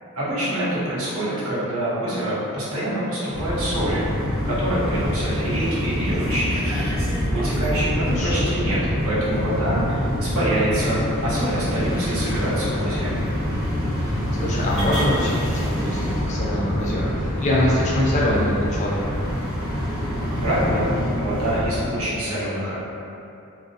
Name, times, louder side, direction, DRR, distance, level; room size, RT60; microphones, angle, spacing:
voice 1, 0.2-6.6 7.3-13.1 20.4-20.9 21.1-22.8, right 1 dB, 65° right, -8 dB, 0.7 m, -25 dB
sound 1, 3.3-21.8, equal, 30° right, 0.7 m, -25 dB
voice 2, 8.1-8.5 14.0-19.3, left 1 dB, 35° left, -5 dB, 0.4 m, -24 dB
2.5 x 2.0 x 2.6 m, 2.6 s
head